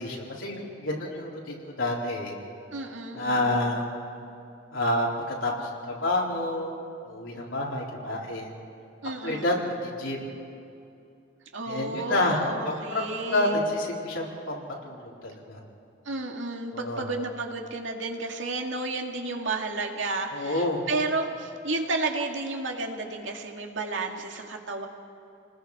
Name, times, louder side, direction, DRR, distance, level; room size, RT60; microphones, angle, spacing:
voice 1, 0.0-2.3 3.1-3.9 4.7-6.7 7.1-8.5 9.2-10.3 11.7-12.4 12.9-15.6 16.7-17.1 20.3-20.8, left 1 dB, 90° left, -3 dB, 4.1 m, -29 dB
voice 2, 2.7-3.7 9.0-9.6 11.5-13.6 16.1-24.9, right 3 dB, 80° right, 2 dB, 2.2 m, -32 dB
29.0 x 20.0 x 4.9 m, 2.6 s
head